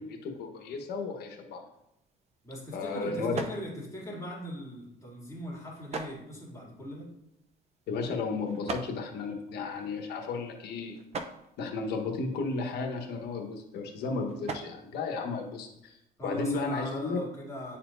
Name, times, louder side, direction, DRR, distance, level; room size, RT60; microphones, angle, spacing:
voice 1, 0.0-1.6 2.7-3.4 7.9-11.0 11.6-17.2, left 4 dB, 75° left, 3 dB, 1.2 m, -34 dB
sound 1, 1.7-16.1, right 3 dB, 40° right, 0.6 m, -45 dB
voice 2, 2.4-7.1 16.2-17.8, equal, 20° left, -5 dB, 2.6 m, -40 dB
10.0 x 4.3 x 2.6 m, 0.82 s
cardioid pair, 110°, 17 cm